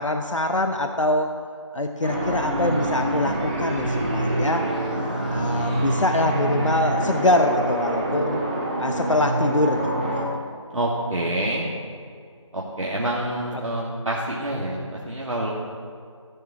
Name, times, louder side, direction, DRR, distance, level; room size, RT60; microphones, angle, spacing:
voice 1, 0.0-1.3 1.7-4.7 5.3-8.4 8.8-10.3, left 1 dB, 70° left, 5 dB, 1.0 m, -24 dB
sound 1, 2.0-10.2, right 1 dB, 15° right, 1.3 m, -26 dB
voice 2, 10.7-11.7 12.5-15.5, right 1 dB, 85° right, -5 dB, 2.5 m, -27 dB
15.0 x 7.7 x 6.4 m, 2.2 s
figure-of-eight pair, 175°, 16 cm